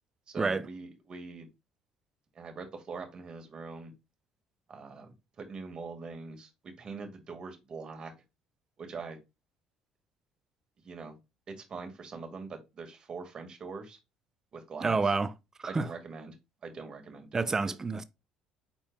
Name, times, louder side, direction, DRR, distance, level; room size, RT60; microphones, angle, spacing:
voice 1, 0.3-1.5 2.3-3.9 4.7-8.1 8.8-9.2 10.8-11.2 11.5-14.0 14.5-15.1 15.7-16.3 16.6-17.5, right 4 dB, 40° right, 1.7 m, -43 dB
voice 2, 14.8-15.3 15.6-15.9 17.3-18.0, right 4 dB, 20° right, 0.6 m, -28 dB
5.2 x 4.4 x 2.2 m
supercardioid pair, 95°, 2 cm